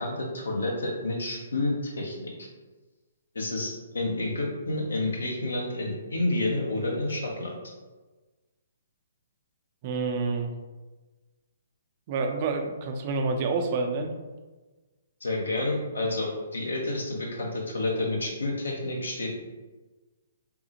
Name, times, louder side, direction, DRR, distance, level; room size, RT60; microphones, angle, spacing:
voice 1, 0.0-2.3 3.3-7.5 15.2-19.3, left 2 dB, 80° left, -1 dB, 0.6 m, -29 dB
voice 2, 9.8-10.5 12.1-14.1, right 4 dB, 40° right, 3 dB, 0.4 m, -28 dB
3.4 x 2.0 x 2.8 m, 1.2 s
figure-of-eight pair, 130°, 0 cm